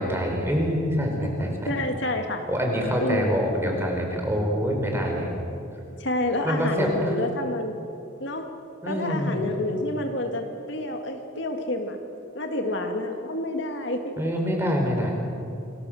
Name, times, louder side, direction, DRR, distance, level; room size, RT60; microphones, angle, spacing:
voice 1, 0.0-1.7 2.5-5.3 6.4-7.1 8.8-9.5 14.2-15.1, equal, 10° right, 1 dB, 4.7 m, -25 dB
voice 2, 1.7-2.5 3.0-3.3 6.0-7.8 8.2-8.5 8.9-12.0 12.3-14.2, left 1 dB, 60° left, 4 dB, 2.2 m, -28 dB
28.0 x 20.5 x 7.8 m, 2.6 s
head